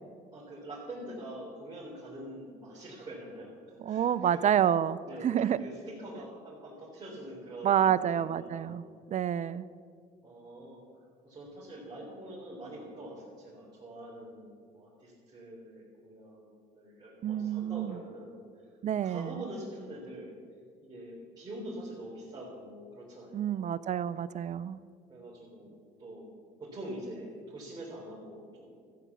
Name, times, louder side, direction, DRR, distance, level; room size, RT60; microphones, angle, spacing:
voice 1, 0.3-4.5 5.1-8.8 10.2-10.8 11.2-18.4 19.0-20.3 20.8-23.7 25.1-26.3 26.6-28.8, right 1 dB, 25° right, -7 dB, 3.8 m, -45 dB
voice 2, 3.8-5.0 5.2-5.6 7.6-9.6 17.2-18.0 18.8-19.3 23.3-24.8, right 9 dB, 45° right, 17 dB, 0.6 m, -28 dB
14.0 x 8.6 x 7.1 m, 2.1 s
supercardioid pair, 85°, 17 cm